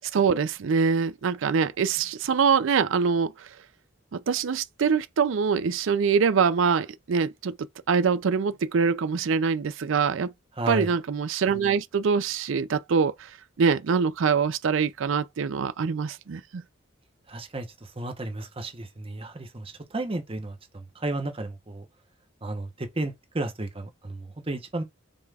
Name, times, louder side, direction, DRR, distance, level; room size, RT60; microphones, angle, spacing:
voice 1, 0.1-3.5 4.1-7.6 7.9-10.3 10.7-13.3 13.6-16.6, right 5 dB, 70° right, 0.4 m, -24 dB
voice 2, 10.6-11.0 17.3-21.9 22.4-24.8, right 2 dB, 30° right, 0.8 m, -33 dB
5.4 x 2.3 x 3.3 m
head